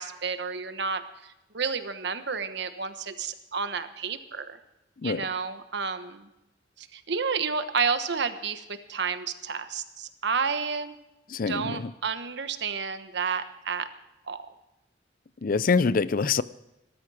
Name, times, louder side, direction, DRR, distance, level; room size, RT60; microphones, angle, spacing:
voice 1, 0.0-4.6 5.0-6.3 6.8-10.9 11.5-13.9 14.3-14.4, right 5 dB, 65° right, 10 dB, 1.2 m, -31 dB
voice 2, 11.3-11.8 15.4-16.4, left 4 dB, 50° left, 17 dB, 0.5 m, -25 dB
19.5 x 13.0 x 4.9 m, 0.94 s
head